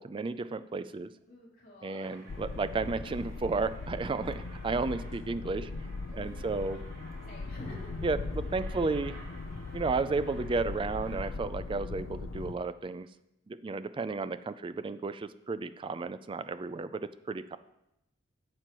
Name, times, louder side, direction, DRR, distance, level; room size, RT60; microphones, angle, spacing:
voice 1, 0.0-1.1 1.8-5.7 6.1-6.8 8.0-9.2 9.7-13.1 13.5-17.6, right 3 dB, 25° right, 13 dB, 0.3 m, -33 dB
voice 2, 1.3-2.1 6.0-6.4 7.3-8.0, left 1 dB, 50° left, -5 dB, 3.2 m, -48 dB
Aircraft, 2.0-11.3, right 1 dB, 80° right, 3.6 m, -54 dB
sound 1, 2.3-12.5, left 3 dB, 80° left, 0.5 m, -39 dB
11.5 x 7.7 x 3.0 m, 0.85 s
head